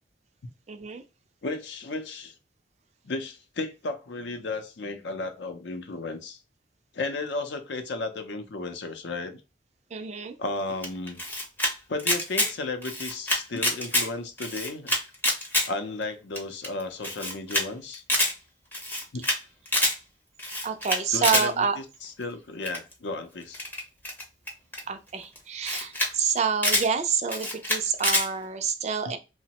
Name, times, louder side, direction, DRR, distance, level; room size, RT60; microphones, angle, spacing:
voice 1, 0.7-1.0 9.9-10.4 20.6-21.8 24.9-29.2, right 6 dB, 35° right, 0.3 m, -28 dB
voice 2, 1.4-2.3 3.0-6.4 6.9-9.4 10.4-11.2 11.9-14.9 15.7-18.0 19.1-19.2 21.1-23.6 29.1-29.2, left 3 dB, 70° left, 0.5 m, -34 dB
Camera, 10.8-11.7 12.0-12.5 12.8-14.1 14.4-15.7 16.0-16.1 16.4-16.5 16.6-16.7 17.0-17.6 17.9-18.3 18.7-19.4 19.7-19.9 20.4-21.5 22.7-22.9 23.5-24.8 25.4-25.5 25.6-26.1 26.4-26.9 27.3-28.3, left 1 dB, 10° left, 0.6 m, -26 dB
2.9 x 2.0 x 2.8 m
head